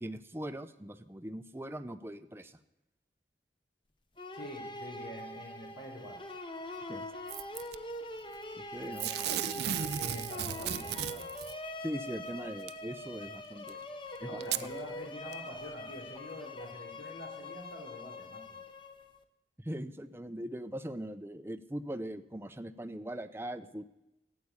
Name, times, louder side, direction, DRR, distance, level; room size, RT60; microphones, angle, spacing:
voice 1, 0.0-2.6 6.9-7.1 8.6-9.1 11.8-13.8 14.2-14.4 19.6-23.8, right 1 dB, 15° right, 9 dB, 0.5 m, -40 dB
sound 1, 4.2-19.2, left 1 dB, 25° left, 0.9 m, -43 dB
voice 2, 4.3-6.2 8.8-11.3 14.2-18.6, left 1 dB, 80° left, 1 dB, 3.4 m, -46 dB
Packing tape duct tape / Tearing, 7.3-7.8 9.0-11.5 12.7-12.8 13.7-13.8 14.4-14.7 15.3-15.4, right 10 dB, 65° right, 0.5 m, -35 dB
13.0 x 8.4 x 9.7 m, 0.93 s
head